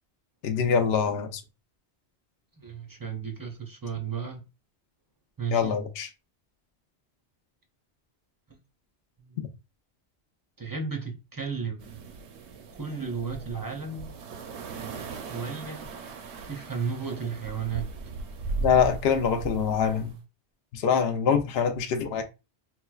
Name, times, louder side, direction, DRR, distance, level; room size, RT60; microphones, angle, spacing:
voice 1, 0.4-1.4 5.5-6.1 18.6-20.1 20.7-22.2, left 7 dB, 70° left, 0.8 m, -24 dB
voice 2, 2.6-4.4 5.4-5.8 8.5-8.6 9.2-9.5 10.6-12.0 12.8-14.2 15.3-15.9 16.5-17.9, right 6 dB, 30° right, 0.4 m, -34 dB
sound 1, 11.8-20.1, right 4 dB, 80° right, 0.9 m, -38 dB
4.3 x 2.1 x 2.3 m
omnidirectional pair, 1.1 m